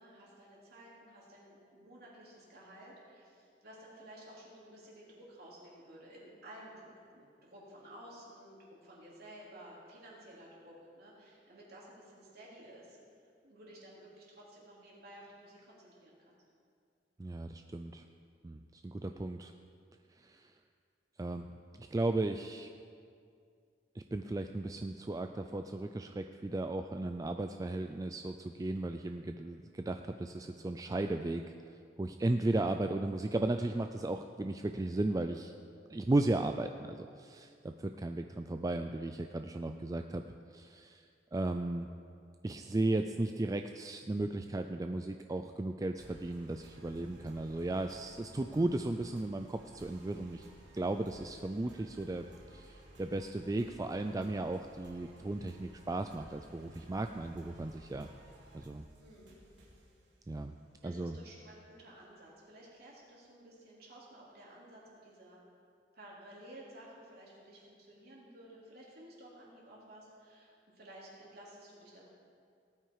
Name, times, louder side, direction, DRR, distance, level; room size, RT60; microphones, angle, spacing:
voice 1, 0.0-13.0 13.4-16.4 59.0-59.4 60.8-65.4 65.9-72.1, right 1 dB, 60° right, -5 dB, 3.7 m, -54 dB
voice 2, 17.2-18.0 18.4-19.5 20.2-20.5 21.2-21.5 21.8-22.7 23.9-31.5 32.0-35.5 35.9-40.2 40.5-41.0 41.3-41.9 42.4-50.5 50.7-58.1 58.5-58.9 60.3-60.6 60.8-61.2, right 2 dB, 20° right, 6 dB, 0.3 m, -35 dB
sound 1, 45.9-61.7, right 1 dB, 80° right, 2.8 m, -57 dB
18.0 x 9.2 x 4.8 m, 2.3 s
head